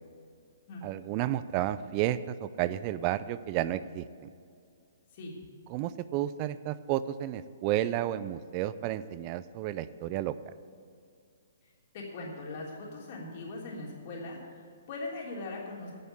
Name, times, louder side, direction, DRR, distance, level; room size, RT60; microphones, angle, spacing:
voice 1, 0.8-4.1 5.7-10.3, right 13 dB, 35° right, 15 dB, 0.4 m, -31 dB
voice 2, 11.9-15.9, left 2 dB, 45° left, -3 dB, 3.3 m, -40 dB
11.0 x 7.0 x 8.4 m, 2.4 s
hypercardioid pair, 140°, 0 cm